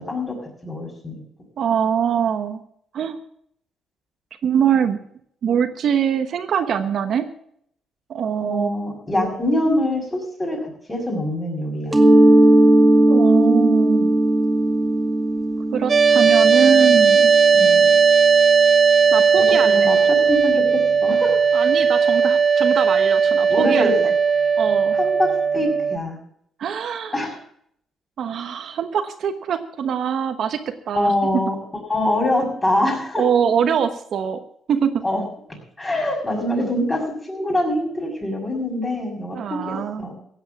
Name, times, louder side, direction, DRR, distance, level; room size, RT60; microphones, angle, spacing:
voice 1, 0.6-1.2 8.4-10.6 10.9-12.0 17.5-17.9 19.4-21.3 23.5-23.9 24.9-25.3 25.5-26.2 27.1-27.3 30.9-31.6 31.9-33.2 35.0-35.2 35.5-40.1, left 1 dB, 20° left, 0 dB, 6.4 m, -24 dB
voice 2, 1.6-2.6 2.9-3.2 4.4-5.0 5.4-7.3 8.1-8.7 13.1-14.2 15.7-17.3 19.1-19.9 21.5-24.1 24.6-25.0 26.6-27.3 28.2-31.4 33.2-34.4 34.7-35.0 39.3-40.1, right 8 dB, 65° right, 8 dB, 1.1 m, -23 dB
Mallet percussion, 11.9-17.5, right 1 dB, 15° right, 2.0 m, -17 dB
sound 1, 15.9-26.0, right 6 dB, 40° right, 0.8 m, -16 dB
16.0 x 8.2 x 7.1 m, 0.68 s
cardioid pair, 100°, 0 cm